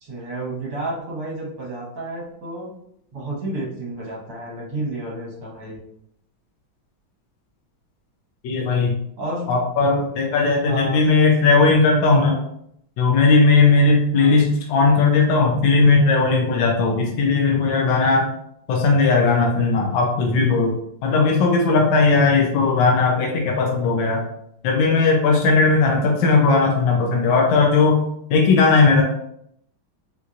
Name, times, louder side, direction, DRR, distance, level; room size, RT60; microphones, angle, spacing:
voice 1, 0.0-2.7 3.1-5.8 9.2-9.5 9.8-10.1 10.7-11.1 14.1-14.3, right 2 dB, 50° right, -4 dB, 1.5 m, -30 dB
voice 2, 8.4-9.0 9.5-12.4 13.0-18.3 18.7-20.7 21.0-24.3 24.6-28.0 28.3-29.0, left 4 dB, 75° left, 0 dB, 1.3 m, -17 dB
4.3 x 2.6 x 2.4 m, 0.73 s
omnidirectional pair, 2.2 m